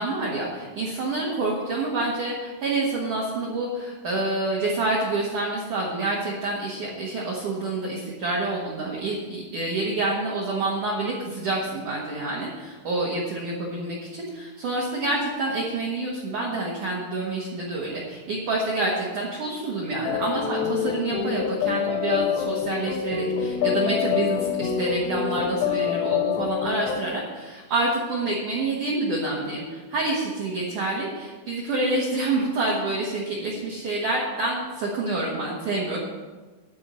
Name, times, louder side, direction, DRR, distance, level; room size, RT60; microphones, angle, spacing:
voice 1, 0.0-36.0, right 2 dB, 70° right, -4 dB, 1.9 m, -27 dB
sound 1, 20.0-27.0, left 9 dB, 85° left, 2.4 m, -26 dB
12.0 x 4.7 x 8.2 m, 1.3 s
omnidirectional pair, 5.8 m